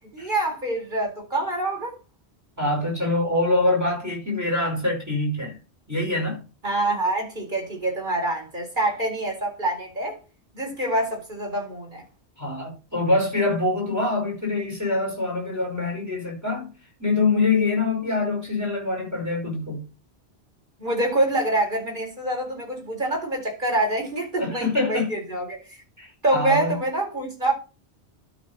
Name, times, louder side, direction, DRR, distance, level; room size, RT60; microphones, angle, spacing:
voice 1, 0.1-1.9 6.6-10.2 10.5-12.0 20.8-25.6 26.2-27.5, right 1 dB, 50° right, 4.5 m, -26 dB
voice 2, 2.6-5.6 5.9-6.4 12.4-16.7 17.0-19.9 24.4-25.1 26.0-26.8, left 2 dB, 15° right, 4.9 m, -24 dB
12.5 x 5.2 x 4.2 m
omnidirectional pair, 1.1 m